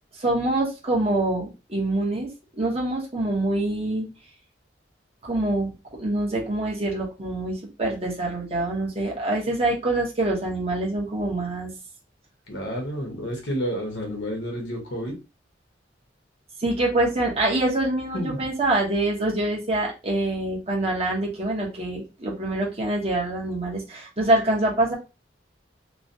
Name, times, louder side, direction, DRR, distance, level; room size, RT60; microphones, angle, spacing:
voice 1, 0.1-2.3 2.6-4.1 5.2-5.7 6.0-11.7 16.6-24.9, right 2 dB, 30° right, -3 dB, 0.9 m, -25 dB
voice 2, 12.5-15.2 18.1-18.5, equal, 70° left, 1 dB, 1.1 m, -30 dB
3.1 x 2.2 x 2.6 m, 0.30 s
head